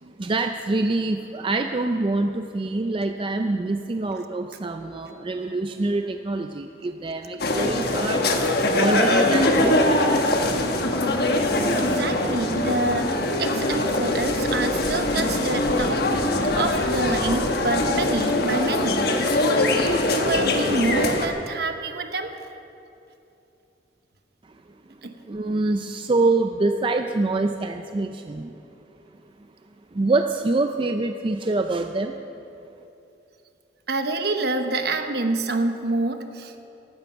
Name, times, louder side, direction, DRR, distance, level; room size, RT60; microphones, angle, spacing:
voice 1, 0.2-8.2 8.7-9.8 25.3-28.5 30.0-32.1, right 2 dB, 30° right, 6 dB, 0.4 m, -25 dB
sound 1, 7.4-21.3, left 1 dB, 60° left, 1.3 m, -22 dB
voice 2, 11.6-16.1 16.5-22.4 25.0-25.2 33.9-36.7, right 2 dB, 60° right, 7 dB, 1.1 m, -28 dB
15.0 x 12.0 x 5.7 m, 2.8 s
head